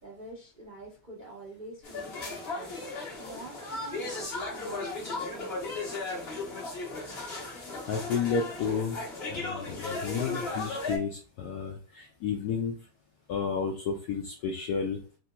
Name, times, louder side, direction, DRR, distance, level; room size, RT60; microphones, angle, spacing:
voice 1, 0.0-5.6, right 2 dB, 75° right, -6 dB, 0.4 m, -47 dB
sound 1, 1.8-11.0, left 3 dB, 45° left, 0.8 m, -36 dB
voice 2, 7.9-9.0 9.3-12.7 13.3-15.0, left 6 dB, 85° left, 0 dB, 0.8 m, -31 dB
3.3 x 2.8 x 2.2 m, 0.37 s
omnidirectional pair, 2.3 m